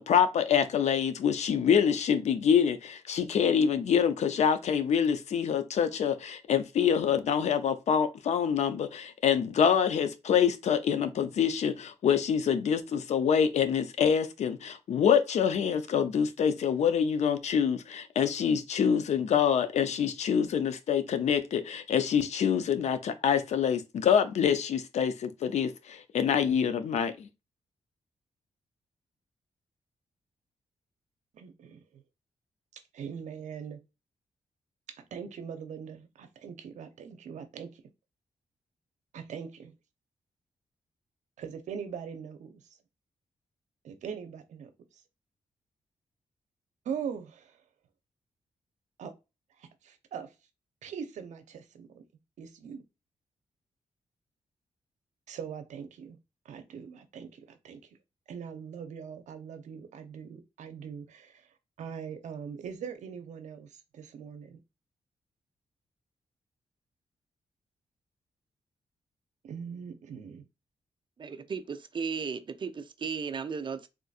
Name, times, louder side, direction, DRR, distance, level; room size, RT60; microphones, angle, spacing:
voice 1, 0.0-27.3, left 7 dB, 70° left, 0.5 m, -26 dB
voice 2, 31.3-32.0 32.7-33.8 35.1-37.8 39.1-39.7 41.4-42.6 43.8-44.7 46.9-47.6 49.0-49.1 49.6-50.3 50.8-52.0 52.4-52.8 55.3-56.2 56.5-57.8 58.3-61.5 61.8-64.6 69.4-70.4, right 7 dB, 85° right, 0.6 m, -41 dB
voice 3, 71.2-73.9, right 5 dB, 45° right, 0.5 m, -35 dB
3.7 x 2.5 x 2.3 m
cardioid pair, 85°, 12 cm